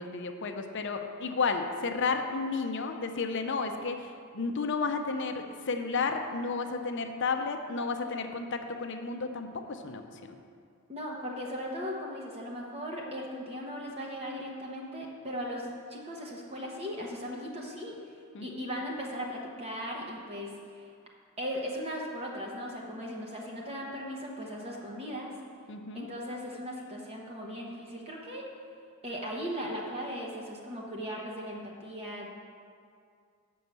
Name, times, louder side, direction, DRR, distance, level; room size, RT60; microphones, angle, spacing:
voice 1, 0.0-10.4 18.3-18.5 25.7-26.1, left 4 dB, 55° left, 6 dB, 0.6 m, -32 dB
voice 2, 10.9-18.0 18.4-20.8 21.4-25.3 25.9-28.5 29.0-32.3, equal, 25° right, -2 dB, 1.0 m, -38 dB
7.3 x 5.5 x 6.7 m, 2.3 s
head